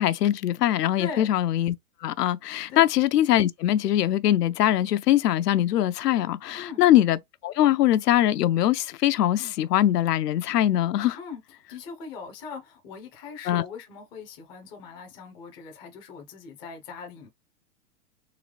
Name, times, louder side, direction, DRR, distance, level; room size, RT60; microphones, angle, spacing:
voice 1, 0.0-1.8 2.0-7.2 7.4-11.2 13.5-13.6, left 12 dB, 85° left, 0.6 m, -22 dB
voice 2, 1.0-1.3 2.7-2.9 6.5-6.8 11.2-11.4 11.7-17.3, left 5 dB, 10° left, 0.4 m, -40 dB
3.9 x 2.9 x 3.1 m
hypercardioid pair, 135°, 47 cm